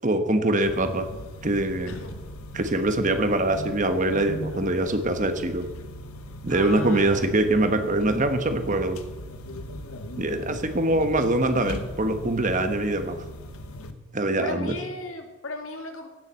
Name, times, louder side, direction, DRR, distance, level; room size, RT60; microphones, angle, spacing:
voice 1, 0.0-1.1 1.4-1.9 2.5-5.6 6.4-9.0 10.2-13.2 14.1-14.8, right 2 dB, 35° right, 8 dB, 1.3 m, -23 dB
sound 1, 0.6-13.9, left 1 dB, 90° left, 1.2 m, -38 dB
voice 2, 1.9-2.3 6.5-7.2 10.5-11.0 14.4-16.1, left 2 dB, 70° left, 5 dB, 2.0 m, -37 dB
16.5 x 7.5 x 7.5 m, 1.2 s
head